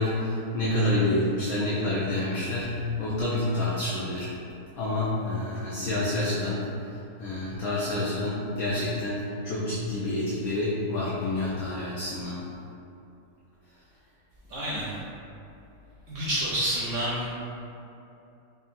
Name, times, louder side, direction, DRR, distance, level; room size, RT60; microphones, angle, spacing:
voice 1, 0.0-4.3 4.8-6.6 7.2-12.4, left 1 dB, 70° left, -7 dB, 0.9 m, -28 dB
voice 2, 14.5-15.0 16.1-17.3, right 1 dB, 65° right, -7 dB, 0.8 m, -28 dB
4.7 x 2.6 x 2.5 m, 2.8 s
omnidirectional pair, 1.8 m